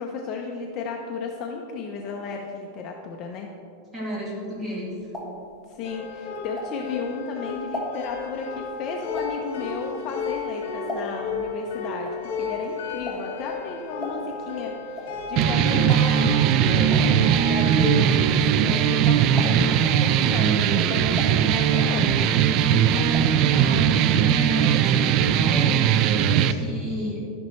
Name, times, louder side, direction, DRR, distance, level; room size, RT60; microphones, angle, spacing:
voice 1, 0.0-3.5 5.7-22.3, left 5 dB, 35° left, 1 dB, 0.7 m, -34 dB
voice 2, 3.9-5.0 22.6-25.8 26.3-27.3, equal, 15° right, -6 dB, 2.7 m, -33 dB
sound 1, 4.6-7.1 7.5-11.4 11.7-19.0 19.3-19.9 20.3-22.1 22.4-23.4 23.7-23.8 24.1-24.2, left 1 dB, 5° left, 1.5 m, -38 dB
sound 2, 5.8-18.2, left 4 dB, 65° left, 1.9 m, -33 dB
sound 3, 15.4-26.5, right 9 dB, 35° right, 0.4 m, -20 dB
11.5 x 10.5 x 3.2 m, 2.5 s
supercardioid pair, 165°, 0 cm